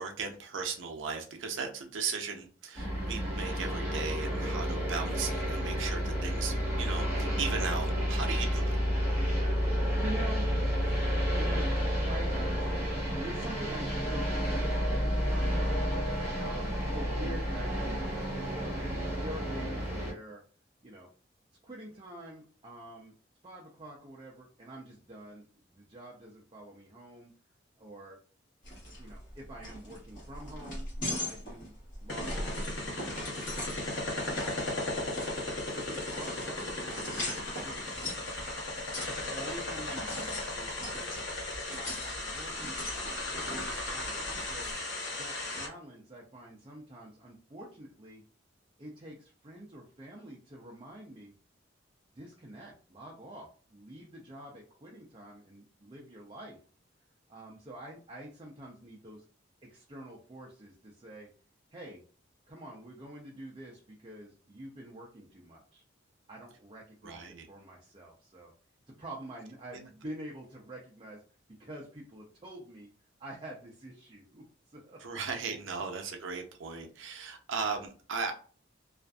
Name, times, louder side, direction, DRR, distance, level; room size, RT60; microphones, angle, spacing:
voice 1, 0.0-8.8 31.0-31.2 44.7-44.8 67.0-67.5 69.7-69.9 75.0-78.3, right 5 dB, 90° right, 0.6 m, -37 dB
sound 1, 2.7-20.1, equal, 10° right, 1.1 m, -30 dB
voice 2, 9.9-15.8 16.4-18.8 19.2-20.4 20.8-21.1 21.6-23.2 23.4-27.3 27.8-28.2 29.0-30.9 31.2-31.7 32.0-33.7 34.2-35.4 35.7-37.9 39.1-41.4 41.8-44.8 45.1-48.2 48.8-51.3 52.1-56.6 57.3-59.2 59.6-61.3 61.7-62.0 62.5-65.8 66.3-68.5 69.0-71.2 71.5-72.9 73.2-75.0, right 1 dB, 25° right, 0.5 m, -47 dB
sound 2, 28.6-44.7, left 1 dB, 45° left, 1.1 m, -41 dB
sound 3, 32.1-45.7, left 2 dB, 70° left, 1.0 m, -36 dB
2.5 x 2.4 x 2.2 m
head